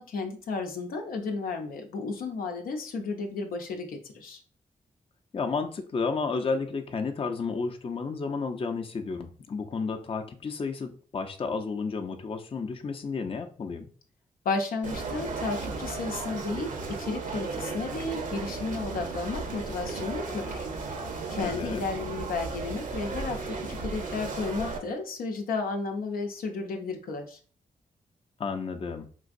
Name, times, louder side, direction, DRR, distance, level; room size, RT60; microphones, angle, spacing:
voice 1, 0.0-4.4 14.4-20.7 21.3-27.4, left 4 dB, 85° left, 3 dB, 0.6 m, -33 dB
voice 2, 5.3-13.9 21.4-21.8 28.4-29.1, left 4 dB, 40° left, 5 dB, 0.5 m, -32 dB
sound 1, 14.8-24.8, right 4 dB, 65° right, 0.7 m, -35 dB
3.8 x 2.5 x 2.5 m, 0.42 s
cardioid pair, 60°, 14 cm